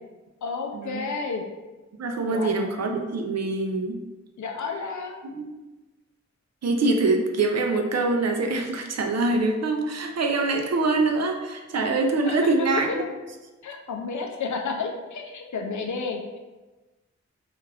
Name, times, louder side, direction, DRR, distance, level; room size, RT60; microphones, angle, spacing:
voice 1, 0.4-1.4 2.3-2.7 4.4-5.5 12.3-12.7 13.6-16.4, left 4 dB, 80° left, 3 dB, 0.5 m, -31 dB
voice 2, 2.0-4.0 5.3-5.4 6.6-13.0, right 3 dB, 65° right, 3 dB, 0.4 m, -24 dB
2.5 x 2.4 x 3.2 m, 1.2 s
wide cardioid pair, 65°, 29 cm